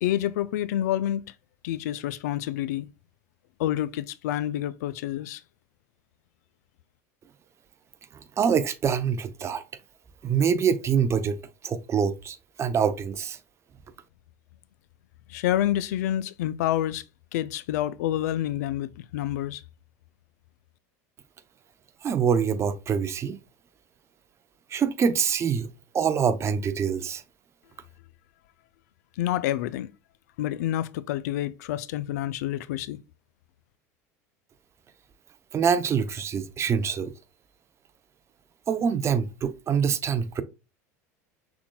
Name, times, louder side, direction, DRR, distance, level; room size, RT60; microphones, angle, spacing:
voice 1, 0.0-1.2 1.6-2.9 3.6-5.4 15.3-17.0 17.3-19.6 29.2-29.9 30.4-33.0, left 12 dB, 80° left, 0.4 m, -28 dB
voice 2, 8.4-9.6 10.2-13.4 22.0-23.4 24.7-27.2 35.5-37.1 38.7-40.4, right 7 dB, 30° right, 0.6 m, -25 dB
5.9 x 3.8 x 2.2 m
hypercardioid pair, 95°, 9 cm